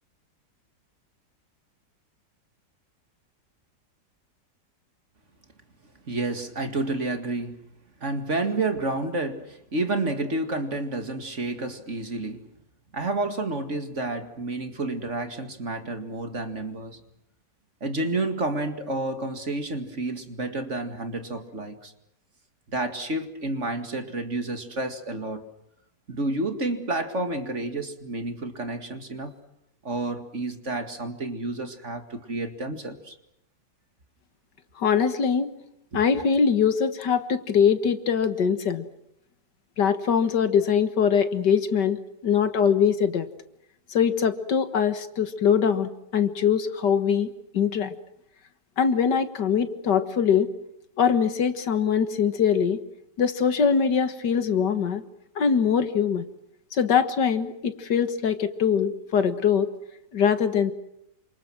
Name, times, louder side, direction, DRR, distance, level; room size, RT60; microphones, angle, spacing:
voice 1, 6.1-7.6 8.0-12.5 12.9-17.0 17.8-21.9 22.7-25.4 26.1-29.3 29.8-33.2 35.9-36.0, right 2 dB, 40° right, 7 dB, 2.4 m, -30 dB
voice 2, 34.8-35.5 35.9-38.8 39.8-43.3 43.9-47.9 48.8-50.5 51.0-52.8 53.2-55.0 55.4-56.2 56.7-59.7 60.1-60.7, left 7 dB, 70° left, 10 dB, 2.1 m, -22 dB
29.0 x 26.5 x 6.1 m, 0.79 s
omnidirectional pair, 1.9 m